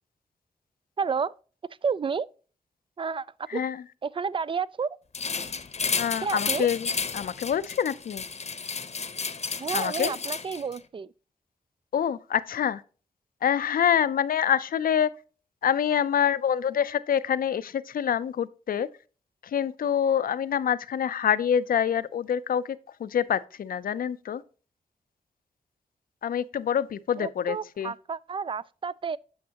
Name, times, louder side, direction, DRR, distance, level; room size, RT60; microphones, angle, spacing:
voice 1, 1.0-1.3 1.8-2.3 3.0-3.3 3.5-3.6 4.0-5.0 6.2-6.7 9.6-11.1 27.2-29.2, right 5 dB, 35° right, 0.4 m, -30 dB
voice 2, 3.5-3.9 6.0-8.2 9.7-10.2 11.9-12.8 13.4-15.1 15.6-18.9 19.5-22.6 23.0-24.4 26.2-27.9, left 8 dB, 75° left, 0.5 m, -26 dB
sound 1, 5.1-10.8, left 5 dB, 45° left, 0.8 m, -32 dB
8.6 x 6.1 x 2.9 m
cardioid pair, 65°, 15 cm